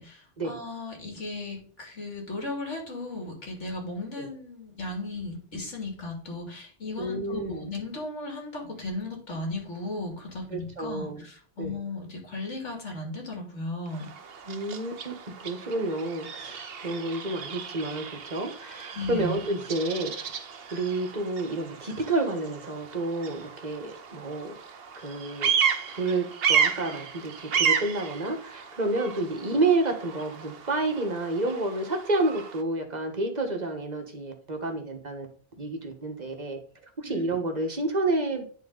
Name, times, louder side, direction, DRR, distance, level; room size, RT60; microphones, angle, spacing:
voice 1, 0.0-14.1 18.9-19.3 37.0-37.4, left 2 dB, 75° left, 0 dB, 2.9 m, -36 dB
voice 2, 7.0-7.7 10.5-11.2 11.6-11.8 14.4-20.3 20.7-24.6 24.9-25.5 25.9-35.3 35.6-36.6 37.0-38.4, right 2 dB, 35° right, 4 dB, 1.5 m, -30 dB
Bird vocalization bird call bird song, 13.9-32.6, right 7 dB, 55° right, 0.9 m, -33 dB
9.9 x 4.1 x 3.8 m, 0.43 s
omnidirectional pair, 1.2 m